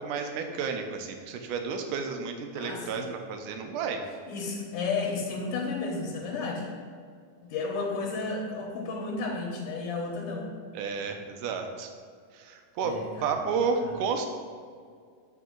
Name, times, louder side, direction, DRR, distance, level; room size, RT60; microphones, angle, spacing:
voice 1, 0.0-4.0 10.7-11.9 12.3-14.3, right 5 dB, 85° right, 5 dB, 2.3 m, -31 dB
voice 2, 2.6-3.1 4.3-6.7 7.4-10.5 12.8-13.3 13.8-13.9, left 4 dB, 85° left, -1 dB, 2.6 m, -32 dB
7.8 x 5.5 x 3.8 m, 2.1 s
omnidirectional pair, 3.6 m